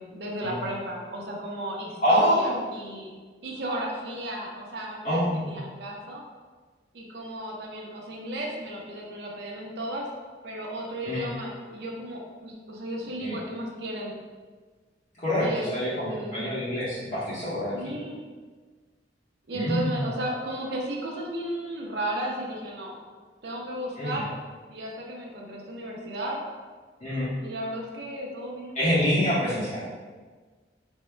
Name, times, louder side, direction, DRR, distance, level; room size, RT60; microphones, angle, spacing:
voice 1, 0.0-3.1 3.4-6.2 6.9-10.1 10.4-14.1 15.4-15.7 16.1-16.6 17.7-18.2 19.5-23.1 23.4-24.3 24.7-26.4 27.4-28.8, right 1 dB, 60° right, -2 dB, 0.6 m, -34 dB
voice 2, 2.0-2.6 5.0-5.6 11.0-11.2 13.2-13.4 15.2-17.7 19.5-20.0 24.0-24.2 27.0-27.3 28.7-29.8, equal, 40° left, -9 dB, 0.8 m, -26 dB
3.5 x 2.1 x 4.3 m, 1.4 s
head